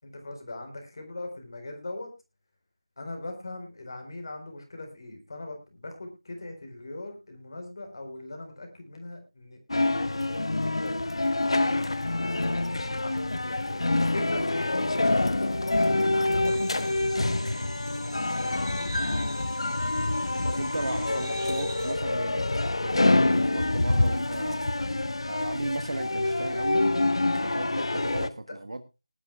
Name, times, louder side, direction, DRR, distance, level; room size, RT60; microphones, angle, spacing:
voice 1, 0.0-2.1 3.0-9.6 9.9-11.0 11.3-11.9 13.0-16.9 18.4-18.9 20.4-20.6 20.9-21.1, left 2 dB, 45° left, 4 dB, 4.2 m, -40 dB
sound 1, 9.7-28.3, left 2 dB, 65° left, 1.0 m, -26 dB
sound 2, 16.4-21.9, right 2 dB, 35° right, 6.1 m, -46 dB
voice 2, 20.5-22.4 22.8-24.8 25.3-26.8 27.4-28.8, right 2 dB, 65° right, 9 dB, 1.4 m, -35 dB
20.5 x 11.5 x 2.3 m, 0.26 s
figure-of-eight pair, 165°, 3 cm